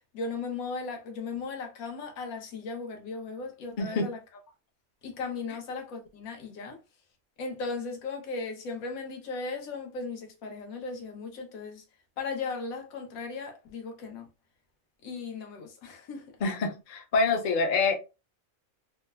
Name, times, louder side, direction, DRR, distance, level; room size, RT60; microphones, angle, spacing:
voice 1, 0.1-4.2 5.0-6.8 7.4-11.8 12.2-14.3 15.0-16.2, left 4 dB, 85° left, 1.1 m, -37 dB
voice 2, 16.4-18.0, left 4 dB, 60° left, 0.5 m, -26 dB
3.1 x 2.0 x 2.2 m
omnidirectional pair, 1.5 m